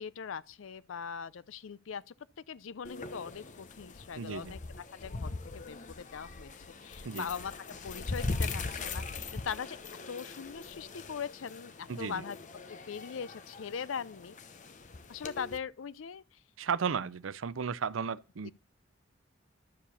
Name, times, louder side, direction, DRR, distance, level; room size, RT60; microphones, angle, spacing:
voice 1, 0.0-2.1 2.5-4.6 5.0-6.5 6.8-9.8 10.1-12.4 12.9-14.4 15.1-16.2 18.4-18.5, left 6 dB, 85° left, 0.5 m, -40 dB
sound 1, 2.8-15.6, left 3 dB, 40° left, 0.8 m, -41 dB
voice 2, 4.2-4.5 7.0-7.3 11.9-12.2 16.6-18.5, right 6 dB, 90° right, 0.5 m, -34 dB
11.5 x 4.7 x 7.0 m
head